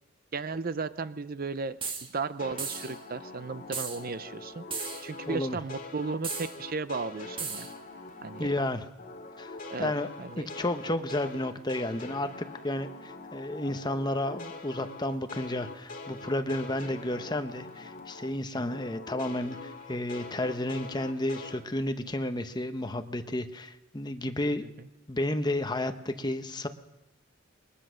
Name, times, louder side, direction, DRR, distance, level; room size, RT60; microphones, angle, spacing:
voice 1, 0.3-1.8 2.1-7.7 8.2-8.5 9.7-9.9 10.2-10.5 18.5-18.7 24.8-24.9, right 4 dB, 45° right, 14 dB, 0.6 m, -35 dB
sound 1, 1.8-2.1 2.6-3.0 3.7-4.0 4.7-5.1 6.2-6.5 7.4-7.7, right 5 dB, 25° right, 1.8 m, -35 dB
sound 2, 2.4-8.7 9.0-18.3 18.6-21.6, left 3 dB, 40° left, 2.3 m, -44 dB
voice 2, 5.3-5.6 8.4-8.9 9.4-10.1 10.4-24.7 25.1-26.7, left 1 dB, 20° left, 8 dB, 1.0 m, -32 dB
22.0 x 20.0 x 6.4 m, 0.96 s
head